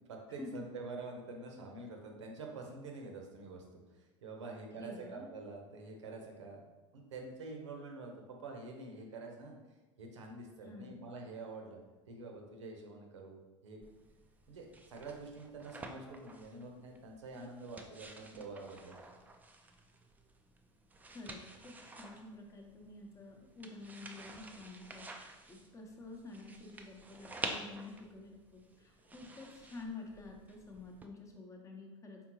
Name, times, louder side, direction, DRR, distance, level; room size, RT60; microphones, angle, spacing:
voice 1, 0.1-3.6 3.9-9.6 10.0-11.8 12.1-13.8 14.5-19.0, right 3 dB, 70° right, 1 dB, 0.8 m, -47 dB
voice 2, 4.7-5.3 10.6-11.0 21.1-32.2, left 3 dB, 20° left, 1 dB, 0.8 m, -49 dB
sound 1, 13.8-31.1, right 2 dB, 10° right, 0.4 m, -50 dB
4.4 x 3.6 x 2.9 m, 1.2 s
figure-of-eight pair, 80°, 16 cm